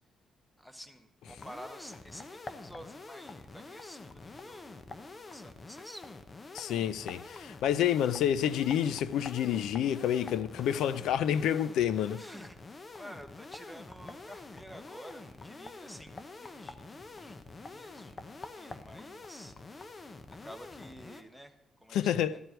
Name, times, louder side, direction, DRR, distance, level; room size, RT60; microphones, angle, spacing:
voice 1, 0.6-6.3 12.2-17.3 17.7-18.2 18.5-19.5 20.4-22.4, equal, 5° left, 1.2 m, -50 dB
sound 1, 1.3-21.2, left 3 dB, 30° left, 0.9 m, -47 dB
voice 2, 6.5-12.2 21.9-22.4, left 10 dB, 80° left, 0.5 m, -29 dB
13.0 x 4.6 x 8.0 m
cardioid pair, 90°, 0 cm